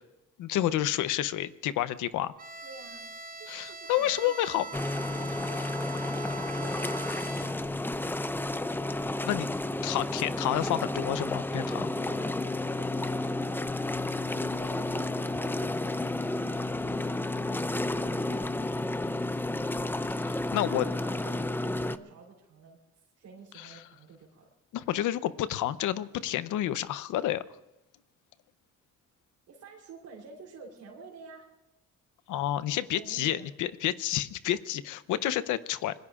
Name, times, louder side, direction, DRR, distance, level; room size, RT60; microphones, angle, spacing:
voice 1, 0.4-2.3 3.5-4.6 9.2-9.5 9.8-11.9 20.5-20.8 23.6-23.8 24.7-27.4 32.3-35.9, left 12 dB, 85° left, 15 dB, 0.7 m, -29 dB
Bowed string instrument, 2.4-7.8, right 3 dB, 30° right, 0.8 m, -42 dB
voice 2, 2.6-3.1 3.4-7.7 12.0-13.8 14.3-20.3 20.7-22.8 23.2-24.5 29.5-31.5 32.9-33.5, right 4 dB, 75° right, -2 dB, 3.7 m, -50 dB
sound 1, 4.7-22.0, left 2 dB, 5° left, 0.5 m, -31 dB
26.5 x 20.5 x 2.5 m, 0.97 s
cardioid pair, 90°, 30 cm